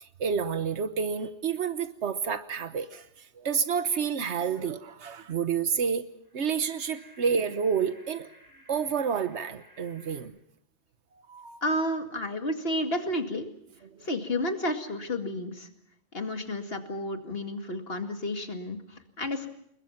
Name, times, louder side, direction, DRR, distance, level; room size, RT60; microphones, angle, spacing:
voice 1, 0.0-3.0 3.4-6.0 6.3-8.3 8.7-10.3 11.3-11.6 13.8-14.1, right 6 dB, 90° right, 10 dB, 1.4 m, -29 dB
sound 1, 6.2-10.2, equal, 20° right, 7.4 m, -56 dB
voice 2, 11.6-13.5 14.0-15.7 16.1-19.5, left 1 dB, 60° left, 5 dB, 2.5 m, -31 dB
29.5 x 21.5 x 5.9 m, 0.72 s
omnidirectional pair, 1.1 m